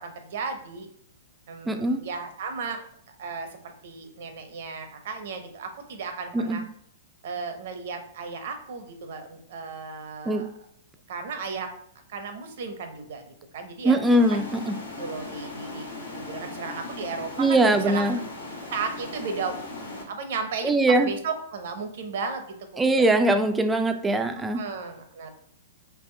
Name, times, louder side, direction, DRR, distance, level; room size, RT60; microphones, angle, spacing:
voice 1, 0.0-0.9 1.5-2.8 3.2-6.6 7.2-10.5 11.1-11.7 12.1-14.0 15.0-18.1 18.7-20.8 21.0-22.9 24.4-25.3, right 5 dB, 65° right, 7 dB, 0.7 m, -35 dB
voice 2, 1.7-2.0 6.3-6.6 10.3-10.5 13.8-14.8 17.4-18.2 20.6-21.1 22.8-24.6, right 2 dB, 10° right, 7 dB, 0.4 m, -21 dB
sound 1, 14.0-20.0, left 2 dB, 85° left, 1.1 m, -38 dB
3.5 x 2.9 x 3.2 m, 0.66 s
hypercardioid pair, 120°, 0 cm